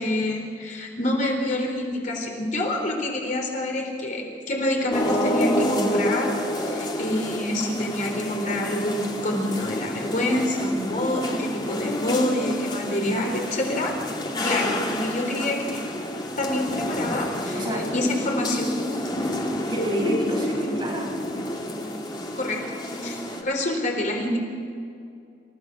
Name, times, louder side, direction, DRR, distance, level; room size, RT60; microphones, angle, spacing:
voice 1, 0.0-13.9 14.4-15.8 16.4-18.8 19.1-19.3 22.4-22.6 23.0-24.4, left 1 dB, 45° left, 1 dB, 3.9 m, -27 dB
sound 1, 4.9-23.4, left 1 dB, 25° left, 2.4 m, -29 dB
voice 2, 13.0-13.5 17.5-17.8 19.7-21.4, equal, 25° right, -2 dB, 6.4 m, -29 dB
29.5 x 16.0 x 6.1 m, 2.4 s
head